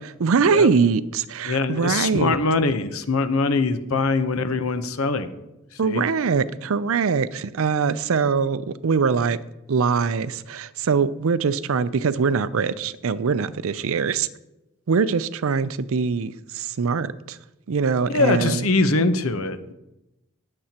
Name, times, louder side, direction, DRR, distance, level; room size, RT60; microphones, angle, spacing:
voice 1, 0.2-2.3 5.8-9.4 9.7-14.3 14.9-17.4 17.7-18.7, right 5 dB, 70° right, 15 dB, 0.5 m, -22 dB
voice 2, 1.4-5.3 5.7-6.1 18.1-19.7, left 3 dB, 80° left, 10 dB, 0.9 m, -23 dB
19.5 x 7.6 x 2.9 m, 0.93 s
head